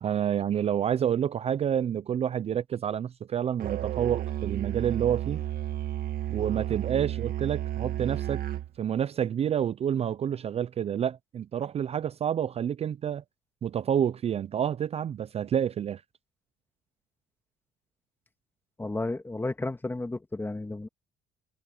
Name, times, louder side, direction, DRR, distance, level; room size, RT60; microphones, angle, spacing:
voice 1, 0.0-5.4 6.3-8.4 8.8-13.2 13.6-16.0, right 9 dB, 35° right, 0.4 m, -28 dB
Musical instrument, 3.6-8.7, right 11 dB, 60° right, 1.9 m, -32 dB
voice 2, 18.8-20.9, left 2 dB, 10° left, 1.7 m, -32 dB
cardioid pair, 110°, 17 cm